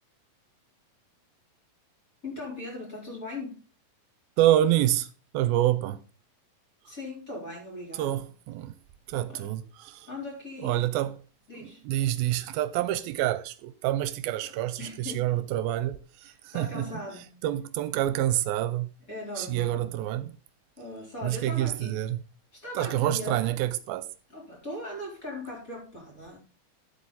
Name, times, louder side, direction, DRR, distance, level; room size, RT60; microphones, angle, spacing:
voice 1, 2.2-3.6 6.8-8.3 9.3-9.5 10.1-10.8 11.5-11.8 12.8-13.0 14.3-15.5 16.2-17.4 19.1-20.0 20.8-22.0 22.5-23.6 24.3-26.4, left 2 dB, 20° left, 3.9 m, -40 dB
voice 2, 4.4-6.0 8.0-8.7 9.1-10.1 10.6-11.1 11.5-16.9 17.4-18.9 19.4-20.3 21.2-22.2 22.8-24.1, right 13 dB, 85° right, 2.4 m, -27 dB
11.0 x 8.1 x 4.1 m
omnidirectional pair, 4.2 m